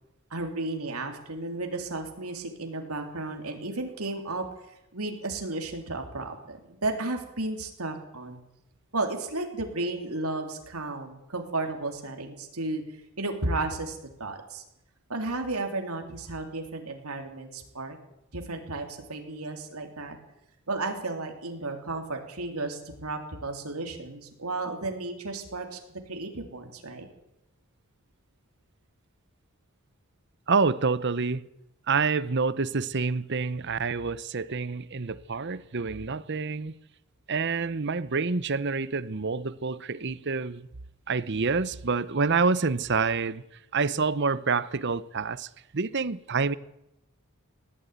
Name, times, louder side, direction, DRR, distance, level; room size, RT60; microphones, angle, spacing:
voice 1, 0.3-4.4 4.9-8.4 8.9-12.8 13.2-14.6 15.1-18.0 18.3-20.2 20.7-25.8 26.1-27.1, right 2 dB, 85° right, 3.4 m, -33 dB
voice 2, 30.5-31.5 31.9-36.7 37.3-40.7 41.1-43.4 43.7-46.6, right 4 dB, 50° right, 0.8 m, -27 dB
19.5 x 14.0 x 9.5 m
head